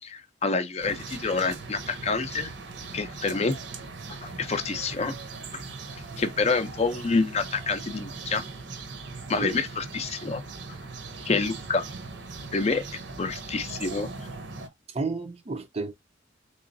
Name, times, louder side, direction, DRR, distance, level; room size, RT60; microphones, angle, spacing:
voice 1, 0.0-2.5 2.9-3.5 4.2-5.2 5.5-5.6 6.2-8.5 9.3-10.4 11.3-11.9 12.5-12.8 13.2-14.1, left 4 dB, 35° left, 0.5 m, -27 dB
sound 1, 0.8-14.7, right 4 dB, 60° right, 0.8 m, -40 dB
voice 2, 14.9-15.9, right 3 dB, 30° right, 0.5 m, -31 dB
3.8 x 3.0 x 2.6 m
head